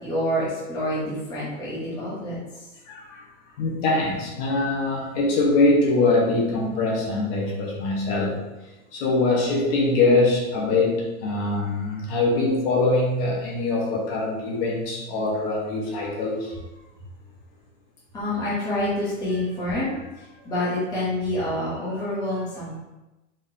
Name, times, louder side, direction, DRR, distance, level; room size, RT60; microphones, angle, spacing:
voice 1, 0.0-3.2 18.1-22.8, left 1 dB, 10° left, -8 dB, 0.9 m, -28 dB
voice 2, 3.6-8.4 8.9-16.5, left 2 dB, 45° left, -2 dB, 1.2 m, -23 dB
4.4 x 3.8 x 2.7 m, 1.0 s
supercardioid pair, 170°, 38 cm